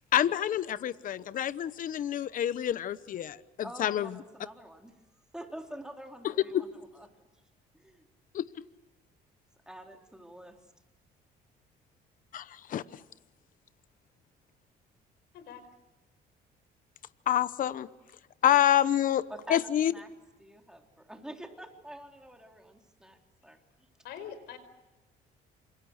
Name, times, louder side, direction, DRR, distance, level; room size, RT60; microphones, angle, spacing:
voice 1, 0.1-3.4 3.8-4.1 8.3-8.4 12.3-12.8 17.3-17.9 18.4-19.2 19.5-19.9, left 11 dB, 55° left, 15 dB, 1.0 m, -27 dB
voice 2, 3.6-4.9 5.3-7.4 7.7-8.1 9.7-10.7 19.3-20.1 20.4-23.2 23.4-23.6, right 1 dB, 5° right, 3 dB, 3.7 m, -46 dB
voice 3, 15.3-15.7 24.0-24.6, left 8 dB, 80° left, 12 dB, 5.0 m, -43 dB
28.5 x 27.0 x 6.6 m, 1.1 s
cardioid pair, 110°, 17 cm